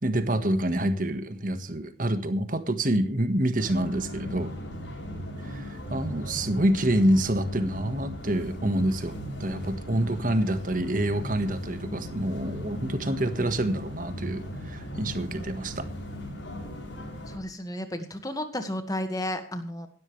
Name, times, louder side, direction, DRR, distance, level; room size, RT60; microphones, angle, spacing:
voice 1, 0.0-4.5 5.5-9.1 9.4-15.9, right 1 dB, 45° right, 10 dB, 1.6 m, -27 dB
sound 1, 3.6-17.4, equal, 85° left, 7.1 m, -38 dB
voice 2, 17.3-19.9, left 1 dB, 20° left, 7 dB, 1.9 m, -32 dB
17.5 x 13.0 x 3.4 m, 0.42 s
head